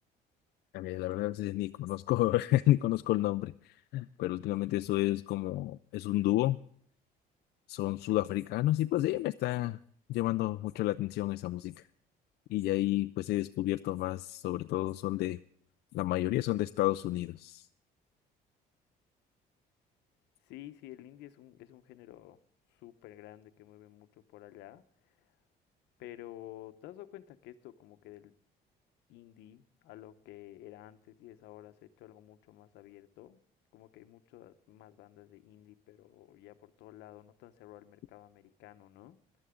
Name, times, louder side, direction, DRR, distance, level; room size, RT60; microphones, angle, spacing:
voice 1, 0.7-6.6 7.7-9.8 10.1-11.9 12.5-15.4 15.9-17.7, left 16 dB, 70° left, 10 dB, 0.4 m, -30 dB
voice 2, 20.4-22.4 22.7-25.3 26.0-28.3 29.1-33.4 33.7-39.2, left 14 dB, 90° left, 10 dB, 0.9 m, -51 dB
18.5 x 12.0 x 3.7 m, 0.62 s
cardioid pair, 110°, 17 cm